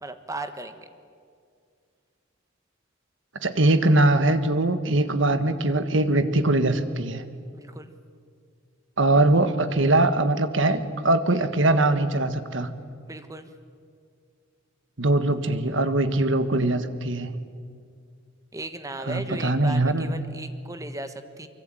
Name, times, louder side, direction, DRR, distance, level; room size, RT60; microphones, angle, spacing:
voice 1, 0.0-0.9 7.5-7.9 13.1-13.5 18.5-21.5, right 2 dB, 15° right, 9 dB, 1.3 m, -36 dB
voice 2, 3.4-7.2 9.0-12.7 15.0-17.3 19.1-20.1, right 2 dB, 70° right, 10 dB, 1.6 m, -22 dB
24.5 x 23.5 x 9.1 m, 2.2 s
head